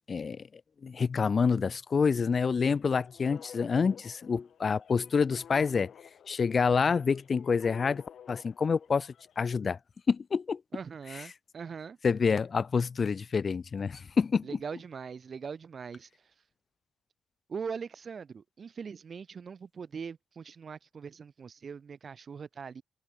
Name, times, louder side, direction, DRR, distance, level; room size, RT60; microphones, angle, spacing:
voice 1, 0.1-0.5 0.8-5.9 6.3-9.8 10.1-10.6 11.1-11.2 12.0-14.5, left 5 dB, 40° left, 0.5 m, -27 dB
sound 1, 2.6-9.4, left 9 dB, 60° left, 1.2 m, -53 dB
voice 2, 10.7-12.0 14.4-16.1 17.5-22.8, right 6 dB, 45° right, 1.2 m, -41 dB
cardioid pair, 90°, 0 cm